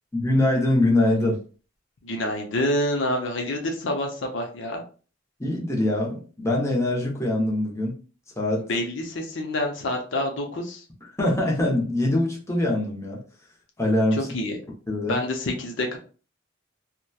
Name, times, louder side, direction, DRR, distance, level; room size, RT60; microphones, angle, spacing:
voice 1, 0.1-1.4 5.4-7.9 8.4-8.7 11.0-13.2 13.8-14.2 14.9-15.2, left 1 dB, 15° left, -2 dB, 0.7 m, -23 dB
voice 2, 2.0-4.8 8.6-10.8 14.1-14.6 15.0-16.0, left 1 dB, 70° left, 2 dB, 0.6 m, -27 dB
2.8 x 2.1 x 2.2 m, 0.37 s
head